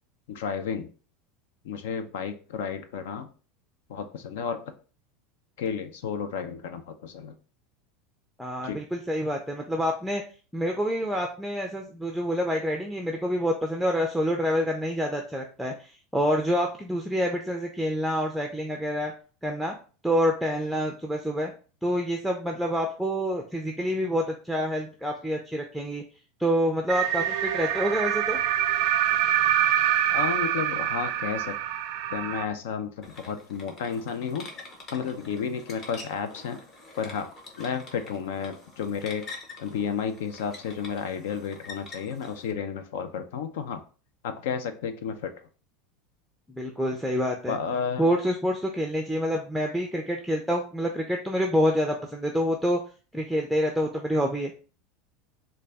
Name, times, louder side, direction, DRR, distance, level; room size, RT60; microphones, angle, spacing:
voice 1, 0.3-0.9 1.6-3.3 3.9-4.6 5.6-7.4 8.6-8.8 30.1-31.6 32.1-34.5 34.9-36.6 37.0-37.3 37.6-39.2 39.6-43.8 44.2-45.3 47.5-48.1, left 6 dB, 80° left, 9 dB, 0.6 m, -32 dB
voice 2, 8.4-10.2 10.5-19.1 19.4-19.7 20.0-21.5 21.8-26.0 26.4-28.4 46.5-47.6 48.0-52.8 53.1-54.5, equal, ahead, 2 dB, 0.4 m, -27 dB
sound 1, 26.9-32.4, right 11 dB, 60° right, 0.4 m, -25 dB
sound 2, 33.0-42.5, left 2 dB, 35° left, 0.8 m, -46 dB
3.8 x 2.3 x 3.4 m, 0.37 s
supercardioid pair, 135°, 0 cm